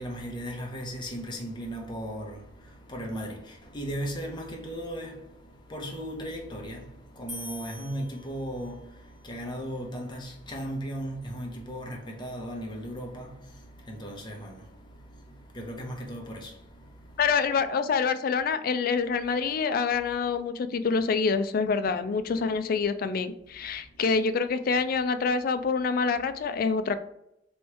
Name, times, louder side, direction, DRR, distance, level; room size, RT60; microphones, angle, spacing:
voice 1, 0.0-17.2 23.6-23.7, equal, 25° left, 0.9 m, -37 dB
sound 1, 7.3-8.9, left 3 dB, ahead, 1.1 m, -43 dB
voice 2, 17.2-27.0, left 5 dB, 55° left, 0.4 m, -26 dB
3.1 x 3.1 x 4.6 m
head